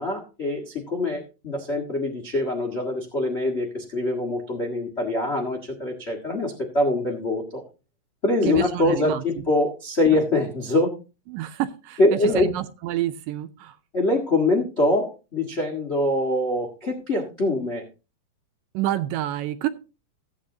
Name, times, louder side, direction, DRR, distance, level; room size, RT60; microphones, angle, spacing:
voice 1, 0.0-7.6 8.2-10.9 12.0-12.5 13.9-17.8, left 2 dB, 45° left, 1 dB, 0.8 m, -24 dB
voice 2, 8.4-9.2 11.3-13.8 18.7-19.7, right 14 dB, 80° right, 10 dB, 2.2 m, -28 dB
15.5 x 8.6 x 2.8 m, 0.31 s
omnidirectional pair, 4.2 m